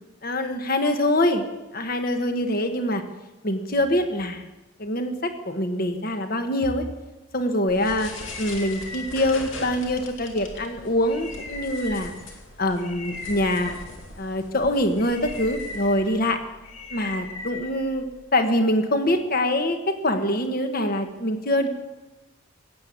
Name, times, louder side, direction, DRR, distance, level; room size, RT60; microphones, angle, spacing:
voice 1, 0.2-1.4 1.7-3.0 3.4-4.4 4.8-6.8 7.3-8.1 8.4-12.1 12.6-13.8 14.2-16.4 16.9-18.1 18.3-21.7, left 1 dB, 45° left, 7 dB, 1.3 m, -24 dB
sound 1, 7.7-18.3, left 2 dB, 70° left, 2.6 m, -38 dB
17.5 x 8.4 x 7.3 m, 1.1 s
head